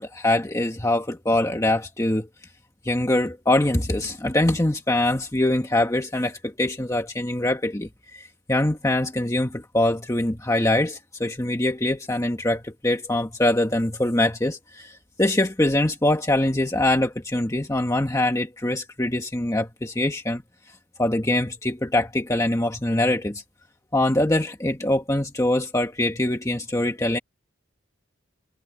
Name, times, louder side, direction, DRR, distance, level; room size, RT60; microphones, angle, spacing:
voice 1, 0.0-2.3 2.8-20.4 21.0-23.4 23.9-27.2, left 1 dB, 15° left, 1.3 m, -23 dB
head